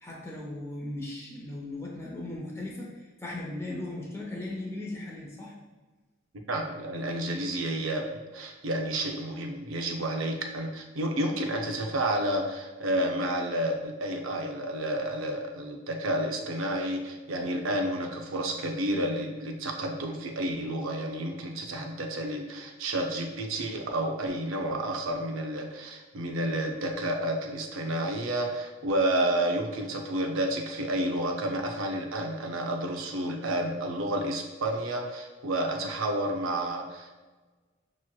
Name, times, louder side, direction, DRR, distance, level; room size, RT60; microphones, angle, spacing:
voice 1, 0.0-5.5, left 1 dB, 15° left, -3 dB, 0.7 m, -37 dB
voice 2, 6.5-37.2, right 1 dB, 80° right, 2 dB, 0.6 m, -30 dB
5.9 x 3.0 x 2.3 m, 1.3 s
head